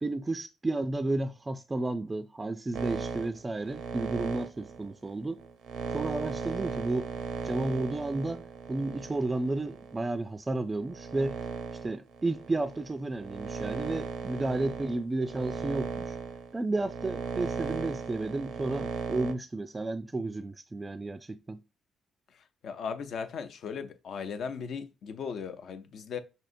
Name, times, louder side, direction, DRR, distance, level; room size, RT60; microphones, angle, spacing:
voice 1, 0.0-5.4 5.9-7.1 7.4-11.4 11.8-16.2 16.5-21.6, right 2 dB, 20° right, 0.3 m, -32 dB
sound 1, 2.7-10.1 10.7-19.3, right 6 dB, 90° right, 0.6 m, -37 dB
voice 2, 22.6-26.2, left 6 dB, 65° left, 0.6 m, -37 dB
6.0 x 2.7 x 2.5 m
cardioid pair, 90°, 0 cm